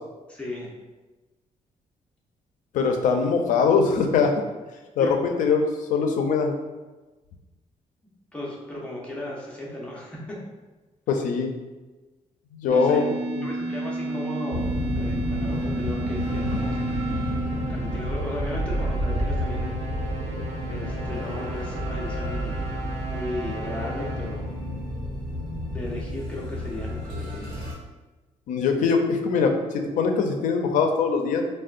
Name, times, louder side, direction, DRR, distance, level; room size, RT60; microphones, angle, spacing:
voice 1, 0.3-0.7 5.0-5.1 8.3-10.4 12.7-13.0 13.4-16.8 17.7-19.7 20.7-22.7 23.1-24.6 25.7-27.8, left 1 dB, 10° left, -5 dB, 0.7 m, -36 dB
voice 2, 2.7-4.4 5.0-6.6 11.1-11.5 12.5-13.5 28.5-31.4, left 5 dB, 90° left, 4 dB, 0.4 m, -22 dB
sound 1, 12.7-18.2, right 2 dB, 25° right, 1.2 m, -31 dB
sound 2, 14.5-27.7, equal, 90° right, 1.0 m, -30 dB
sound 3, 16.1-24.6, right 2 dB, 65° right, 0.6 m, -39 dB
3.5 x 2.2 x 2.4 m, 1.2 s
cardioid pair, 150°, 13 cm